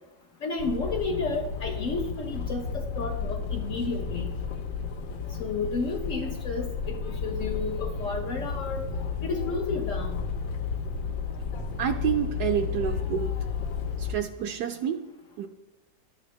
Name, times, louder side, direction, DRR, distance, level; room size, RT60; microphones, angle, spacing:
voice 1, 0.4-4.3 5.4-8.9 9.2-10.2, left 4 dB, 60° left, 2 dB, 0.9 m, -32 dB
sound 1, 0.6-14.2, left 5 dB, 85° left, 1.5 m, -32 dB
voice 2, 11.8-13.3 14.0-15.0 15.4-15.5, right 8 dB, 70° right, 7 dB, 1.0 m, -28 dB
11.5 x 7.9 x 3.2 m, 1.0 s
omnidirectional pair, 2.0 m